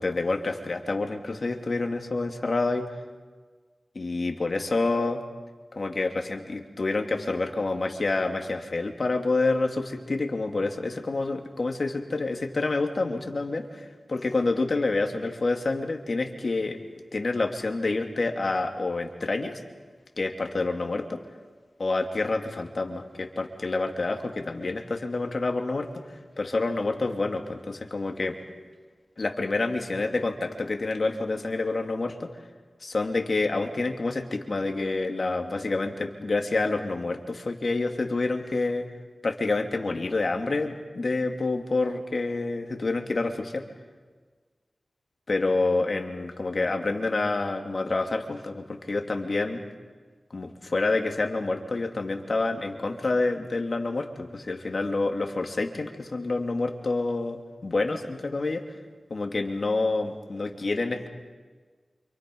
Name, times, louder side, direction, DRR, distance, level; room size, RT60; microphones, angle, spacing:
voice 1, 0.0-3.0 3.9-5.2 5.7-16.8 17.1-19.6 20.2-21.2 21.8-28.4 29.2-32.3 32.8-38.9 39.2-43.6 45.3-49.6 50.3-58.6 59.1-61.1, left 3 dB, 60° left, 4 dB, 3.0 m, -28 dB
29.5 x 27.5 x 5.6 m, 1.4 s
cardioid pair, 40°, 0 cm